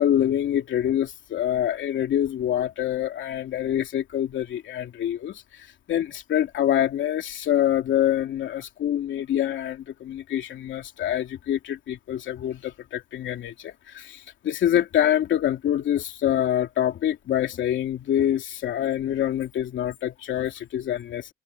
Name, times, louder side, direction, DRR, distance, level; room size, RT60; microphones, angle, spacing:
voice 1, 0.0-21.3, left 11 dB, 75° left, 3.0 m, -26 dB
open air
cardioid pair, 90°, 20 cm